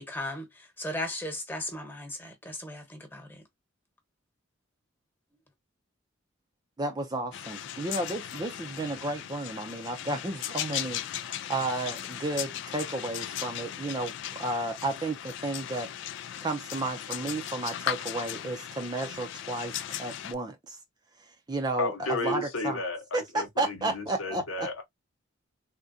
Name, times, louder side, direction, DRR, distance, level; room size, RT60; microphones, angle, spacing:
voice 1, 0.0-3.4, left 1 dB, 10° left, 1.1 m, -37 dB
voice 2, 6.8-15.9 16.4-20.8 21.2-22.8 23.1-24.7, right 2 dB, 20° right, 0.5 m, -33 dB
sound 1, 7.3-20.3, left 11 dB, 60° left, 0.3 m, -37 dB
voice 3, 21.8-24.8, left 2 dB, 90° left, 0.9 m, -33 dB
3.6 x 2.2 x 2.6 m
head